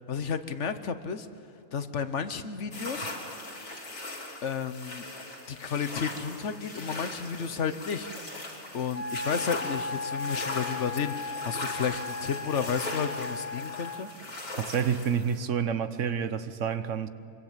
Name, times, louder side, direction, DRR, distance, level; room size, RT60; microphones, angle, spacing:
voice 1, 0.1-1.3 1.7-3.1 4.4-5.1 5.5-8.1 8.7-14.1, left 6 dB, 65° left, 1.3 m, -32 dB
sound 1, 2.7-15.4, left 2 dB, 85° left, 3.7 m, -39 dB
Wind instrument woodwind instrument, 8.9-14.1, left 3 dB, 10° right, 0.5 m, -36 dB
voice 2, 14.7-17.1, right 7 dB, 70° right, 1.3 m, -28 dB
24.5 x 24.0 x 7.5 m
omnidirectional pair, 1.3 m